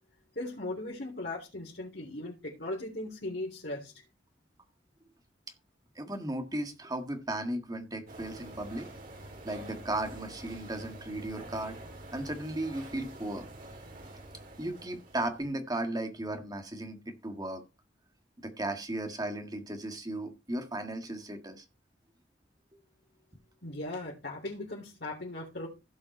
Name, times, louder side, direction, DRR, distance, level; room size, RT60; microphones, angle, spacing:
voice 1, 0.4-4.0 23.6-25.7, left 2 dB, 60° left, -3 dB, 3.5 m, -38 dB
voice 2, 6.0-8.9 9.4-11.8 12.1-13.4 14.6-17.6 18.4-21.6, right 1 dB, 20° right, 6 dB, 1.8 m, -36 dB
sound 1, 8.1-15.5, right 2 dB, 50° right, 3.9 m, -47 dB
16.0 x 5.6 x 4.3 m, 0.26 s
head